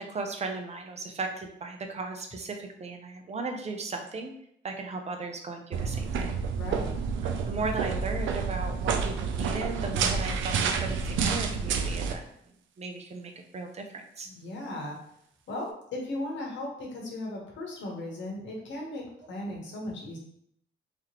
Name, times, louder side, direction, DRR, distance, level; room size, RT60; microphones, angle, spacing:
voice 1, 0.0-4.3 4.6-6.4 7.2-12.3 12.8-14.3 16.6-16.7, right 3 dB, 35° right, 4 dB, 0.7 m, -36 dB
sound 1, 5.7-12.1, right 5 dB, 75° right, 0.5 m, -29 dB
voice 2, 6.6-7.0 14.2-15.0 15.5-20.2, left 1 dB, 70° left, -1 dB, 1.4 m, -37 dB
4.0 x 3.0 x 3.0 m, 0.71 s
cardioid pair, 90°, 20 cm